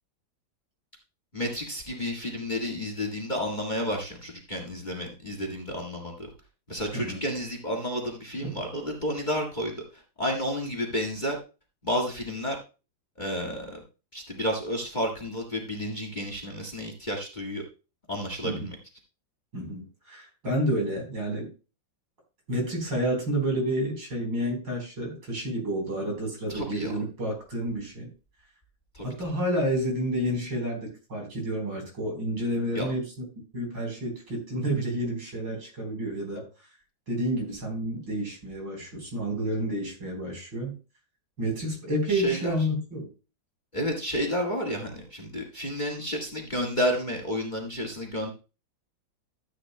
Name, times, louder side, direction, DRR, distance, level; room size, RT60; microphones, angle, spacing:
voice 1, 1.3-6.3 6.7-9.7 10.2-11.4 11.8-12.6 13.2-13.8 14.1-17.6 18.1-18.7 26.5-26.9 28.9-29.1 32.7-32.9 42.1-42.6 43.7-48.3, equal, 25° left, 2 dB, 1.8 m, -31 dB
voice 2, 19.5-21.5 22.5-28.1 29.0-33.1 33.5-36.5 37.1-40.7 41.4-43.1, equal, 70° right, 1 dB, 5.0 m, -30 dB
14.0 x 8.6 x 2.2 m, 0.32 s
omnidirectional pair, 2.1 m